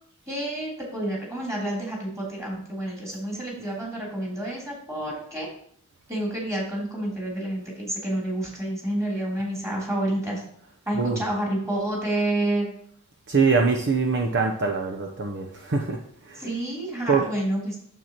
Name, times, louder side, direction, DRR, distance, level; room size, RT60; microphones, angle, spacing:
voice 1, 0.3-5.5 6.1-10.4 10.8-12.7 16.4-17.8, right 1 dB, 15° right, -3 dB, 3.2 m, -29 dB
voice 2, 10.9-11.2 13.3-16.0 16.3-16.4 17.1-17.2, right 4 dB, 55° right, 4 dB, 0.8 m, -23 dB
9.0 x 7.5 x 2.9 m, 0.64 s
head